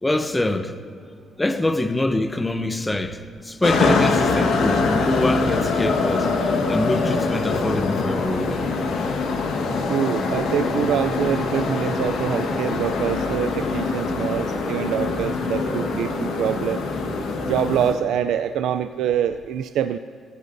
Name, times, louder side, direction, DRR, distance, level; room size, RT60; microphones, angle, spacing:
voice 1, 0.0-0.7 1.4-8.6, left 2 dB, 15° left, 0.7 m, -24 dB
sound 1, 3.6-17.9, left 3 dB, 80° left, 1.4 m, -23 dB
voice 2, 9.8-16.8 17.4-20.0, right 9 dB, 85° right, 0.3 m, -25 dB
19.0 x 15.0 x 2.7 m
cardioid pair, 105°, 0 cm